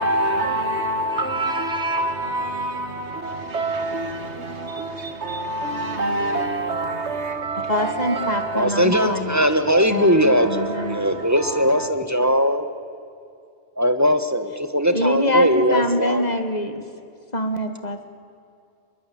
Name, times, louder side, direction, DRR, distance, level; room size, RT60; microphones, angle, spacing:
voice 1, 0.0-11.9, right 1 dB, 70° right, 2.1 m, -27 dB
voice 2, 7.7-9.4 9.9-11.1 14.9-16.8 17.3-18.1, left 1 dB, 35° left, 1.9 m, -25 dB
voice 3, 8.5-12.7 13.8-16.3, equal, 15° right, 1.4 m, -20 dB
24.0 x 22.0 x 8.8 m
omnidirectional pair, 1.2 m